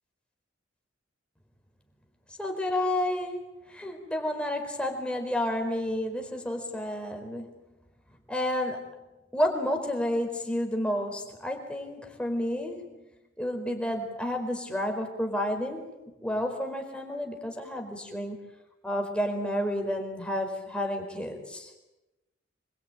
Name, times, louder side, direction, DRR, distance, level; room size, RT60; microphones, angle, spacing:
voice 1, 2.4-7.5 8.3-8.9 9.3-12.8 13.4-15.9 16.2-18.4 18.8-21.7, left 1 dB, 5° left, 3 dB, 4.4 m, -30 dB
26.5 x 22.0 x 9.2 m, 0.99 s
head